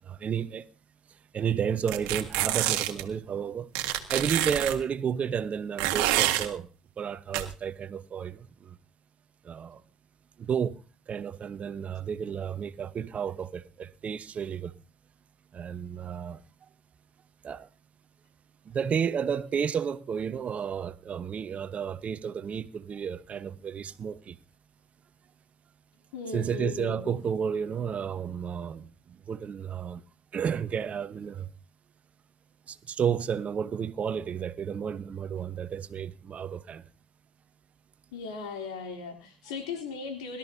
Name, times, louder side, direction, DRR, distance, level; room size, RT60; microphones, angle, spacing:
voice 1, 0.1-0.7 1.3-3.7 4.1-6.7 7.0-8.8 9.4-9.8 10.4-10.8 11.1-14.7 15.5-16.4 17.4-17.7 18.7-24.4 26.3-28.9 29.3-30.0 30.3-31.5 32.7-36.8, right 7 dB, 45° right, 1.0 m, -32 dB
sound 1, 1.9-3.0 3.8-4.8 5.8-6.5 7.3-7.4, right 14 dB, 80° right, 1.6 m, -27 dB
voice 2, 26.1-27.2 38.1-40.4, left 5 dB, 90° left, 3.2 m, -37 dB
21.5 x 13.0 x 2.8 m
hypercardioid pair, 70°, 3 cm